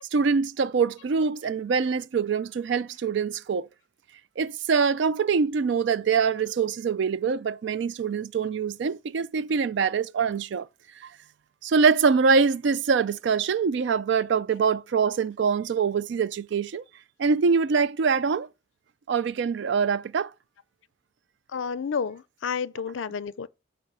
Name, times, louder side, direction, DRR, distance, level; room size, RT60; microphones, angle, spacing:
voice 1, 0.1-3.7 4.4-10.7 11.6-16.8 17.2-18.5 19.1-20.3, right 5 dB, 60° right, 0.3 m, -24 dB
voice 2, 21.5-23.5, left 6 dB, 75° left, 0.4 m, -30 dB
8.9 x 3.0 x 6.0 m
head